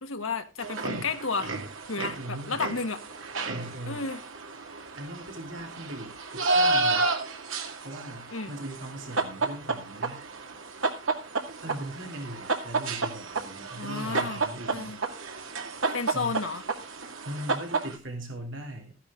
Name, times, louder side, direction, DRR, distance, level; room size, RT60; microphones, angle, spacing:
voice 1, 0.0-1.5 1.9-3.0 3.9-4.2 8.3-8.5 13.8-14.4 14.7-15.0 15.9-16.6, left 4 dB, 80° left, 8 dB, 1.5 m, -32 dB
sound 1, 0.6-18.0, right 3 dB, 80° right, 2.2 m, -31 dB
voice 2, 2.0-2.7 3.5-4.1 5.0-7.1 7.8-10.2 11.6-15.0 16.1-16.4 17.2-18.9, right 1 dB, 65° right, 2 dB, 3.1 m, -40 dB
14.5 x 10.0 x 3.7 m, 0.28 s
head